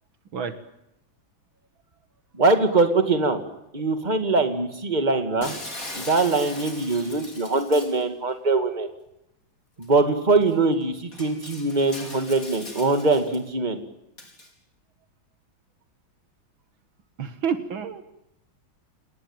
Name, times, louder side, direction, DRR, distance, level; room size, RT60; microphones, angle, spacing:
voice 1, 2.4-3.4 3.7-5.6 5.9-8.9 9.8-13.8, right 3 dB, 20° right, 7 dB, 2.5 m, -22 dB
Shatter, 5.4-8.0 9.8-9.9 10.4-10.5 11.1-13.4 14.2-14.5, left 2 dB, 40° left, 5.5 m, -39 dB
voice 2, 17.2-18.0, right 7 dB, 75° right, 10 dB, 2.4 m, -28 dB
28.5 x 19.5 x 9.1 m, 0.86 s
omnidirectional pair, 2.2 m